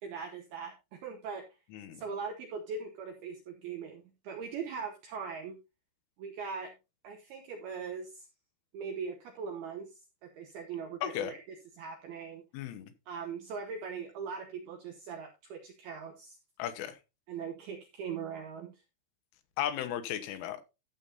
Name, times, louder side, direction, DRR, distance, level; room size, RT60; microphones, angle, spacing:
voice 1, 0.0-1.5 1.9-5.6 6.2-6.7 7.0-8.3 8.7-11.4 11.7-12.4 13.1-16.4 17.3-18.8, right 6 dB, 80° right, 5 dB, 2.2 m, -40 dB
voice 2, 11.0-11.3 12.5-12.9 16.6-17.0 19.6-20.6, left 11 dB, 80° left, 9 dB, 3.5 m, -35 dB
14.5 x 7.1 x 2.7 m, 0.26 s
omnidirectional pair, 5.8 m